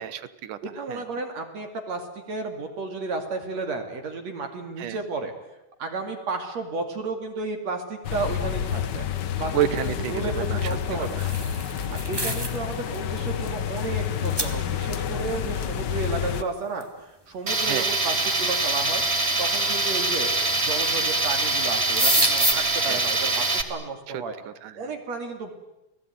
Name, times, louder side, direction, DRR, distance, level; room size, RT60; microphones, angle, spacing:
voice 1, 0.0-0.6 0.9-1.0 4.8-5.0 9.5-11.3 12.1-12.2 17.7-17.9 22.9-23.0 24.1-24.9, right 11 dB, 85° right, 15 dB, 2.8 m, -30 dB
voice 2, 0.6-5.3 5.8-9.1 9.4-9.6 9.8-11.3 11.9-20.3 20.6-24.3 24.7-25.5, right 3 dB, 60° right, 4 dB, 3.6 m, -33 dB
sound 1, 8.0-16.4, left 9 dB, 85° left, 0.9 m, -29 dB
sound 2, 10.8-12.6 13.0-13.2 13.8-13.9 14.4-14.5 16.8-16.9 17.9-18.0 18.7-19.2 20.4-20.9 21.2-21.3 21.6-22.5, right 1 dB, 10° right, 1.8 m, -26 dB
Tools, 17.5-23.6, right 2 dB, 25° right, 1.7 m, -24 dB
29.5 x 19.5 x 9.5 m, 0.94 s
omnidirectional pair, 3.6 m